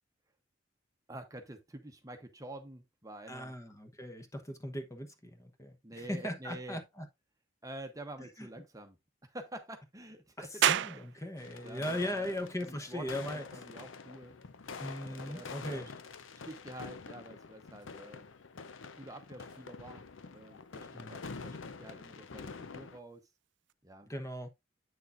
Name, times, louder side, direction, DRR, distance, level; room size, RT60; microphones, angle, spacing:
voice 1, 1.1-3.5 5.8-6.8 7.6-9.0 9.2-10.9 11.2-11.3 11.6-14.3 15.0-15.9 16.4-18.3 19.0-20.0 20.3-23.3 23.8-24.1, right 1 dB, 20° right, 0.9 m, -48 dB
voice 2, 3.3-7.1 10.4-13.4 14.8-15.9 21.0-21.2 24.1-24.5, left 1 dB, 15° left, 1.0 m, -39 dB
sound 1, 10.6-23.7, right 10 dB, 65° right, 0.4 m, -40 dB
sound 2, 11.4-23.0, left 4 dB, 90° left, 0.7 m, -47 dB
8.3 x 6.6 x 2.5 m
head